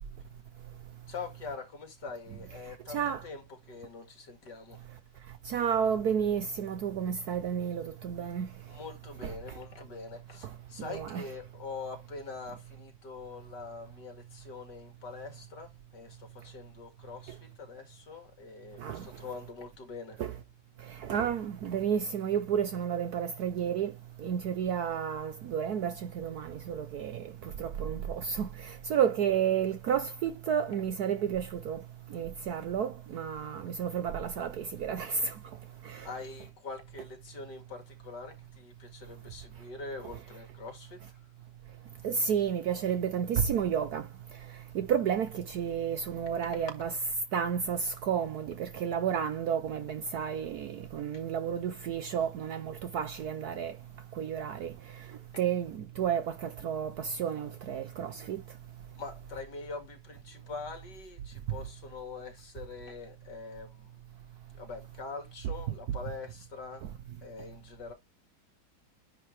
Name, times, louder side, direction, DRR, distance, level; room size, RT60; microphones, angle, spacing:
voice 1, 1.1-4.8 8.7-20.2 36.0-41.2 46.2-46.7 51.1-51.2 59.0-63.9 64.6-66.9 67.2-67.9, left 4 dB, 60° left, 2.6 m, -44 dB
voice 2, 2.9-3.2 5.4-8.5 9.2-9.3 10.8-11.2 18.8-19.1 20.2-20.4 20.9-23.9 24.2-31.8 32.1-35.4 35.8-36.1 42.0-44.1 44.7-46.9 47.3-53.8 54.1-55.1 55.4-58.4, right 8 dB, 65° right, 1.0 m, -31 dB
9.9 x 3.8 x 3.2 m
omnidirectional pair, 2.1 m